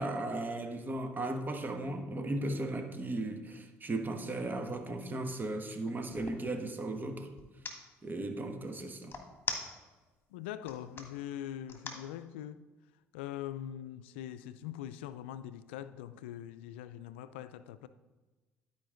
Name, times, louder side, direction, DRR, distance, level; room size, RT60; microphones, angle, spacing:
voice 1, 0.0-7.3 8.0-9.1, right 2 dB, 35° right, 1.3 m, -36 dB
sound 1, 5.0-6.5 7.4-7.8 9.1-10.1 10.5-11.1 11.7-12.1, left 4 dB, 35° left, 1.6 m, -40 dB
voice 2, 10.3-12.6 13.1-17.9, left 11 dB, 90° left, 0.3 m, -42 dB
12.0 x 5.1 x 3.8 m
hypercardioid pair, 65°, 6 cm